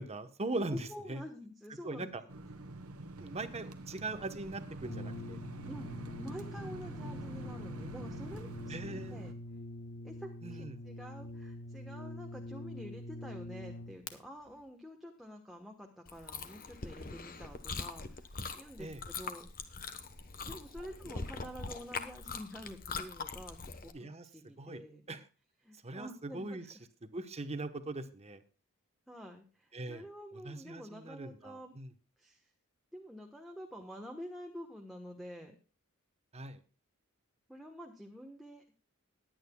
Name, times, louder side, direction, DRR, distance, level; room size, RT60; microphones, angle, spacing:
voice 1, 0.0-1.2 1.8-2.2 3.2-5.4 8.7-9.2 10.4-10.8 18.8-19.0 23.9-24.3 24.6-24.8 25.1-25.2 25.8-26.6 27.0-28.4 29.7-30.1 30.3-31.9 36.3-36.6, right 2 dB, 30° right, 9 dB, 1.0 m, -40 dB
voice 2, 0.7-2.1 5.7-5.9 6.2-9.4 10.0-19.7 20.4-25.1 25.6-26.7 29.1-31.7 32.2-32.4 32.9-35.5 37.5-38.6, equal, ahead, 1 dB, 1.1 m, -48 dB
sound 1, 2.3-9.3, right 1 dB, 85° right, 1.2 m, -46 dB
Brass instrument, 4.8-14.1, left 1 dB, 65° left, 1.4 m, -45 dB
Chewing mastication, 16.1-23.9, left 4 dB, 40° left, 1.1 m, -42 dB
21.0 x 8.9 x 2.3 m, 0.36 s
head